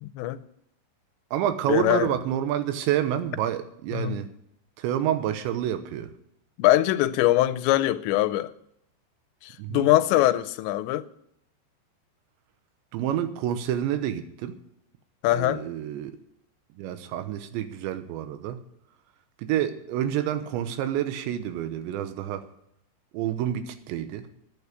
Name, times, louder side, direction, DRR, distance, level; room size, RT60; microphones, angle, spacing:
voice 1, 0.0-0.4 1.7-2.1 3.9-4.2 6.6-8.5 9.4-11.1 15.2-15.6, left 15 dB, 90° left, 2.9 m, -22 dB
voice 2, 1.3-4.3 4.8-6.1 9.6-9.9 12.9-14.6 15.3-16.1 16.8-18.6 19.4-22.4 23.1-24.2, right 11 dB, 85° right, 3.3 m, -28 dB
11.0 x 8.7 x 8.3 m
omnidirectional pair, 5.1 m